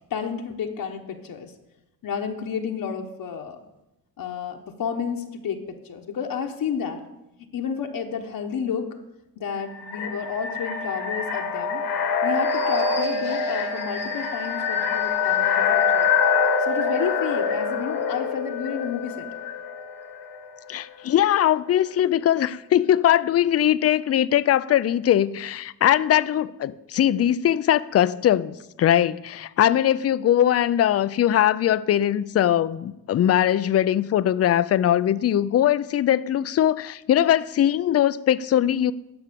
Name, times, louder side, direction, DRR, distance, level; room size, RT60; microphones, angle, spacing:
voice 1, 0.1-1.5 2.0-3.6 4.2-7.0 7.5-9.0 9.4-11.8 12.2-16.1 16.6-19.3, left 7 dB, 65° left, 1.1 m, -31 dB
sound 1, 9.6-20.4, left 5 dB, 90° left, 1.7 m, -25 dB
voice 2, 20.7-38.9, left 11 dB, 40° left, 0.4 m, -21 dB
10.5 x 6.1 x 6.8 m
cardioid pair, 105°, 38 cm